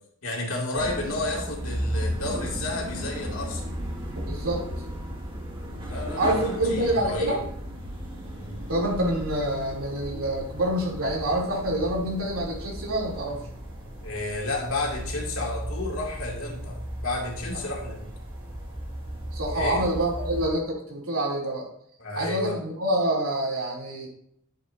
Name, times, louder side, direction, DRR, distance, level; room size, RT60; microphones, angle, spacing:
voice 1, 0.2-3.7 5.6-7.4 8.4-8.6 14.0-18.1 19.5-19.9 22.0-22.6, left 2 dB, 85° left, -1 dB, 2.5 m, -32 dB
sound 1, 0.7-20.5, equal, 25° right, 2.0 m, -35 dB
voice 2, 4.3-4.6 6.2-7.4 8.7-13.4 19.3-21.7 22.1-24.1, right 1 dB, 80° right, -2 dB, 3.1 m, -27 dB
12.0 x 7.8 x 2.7 m, 0.70 s
head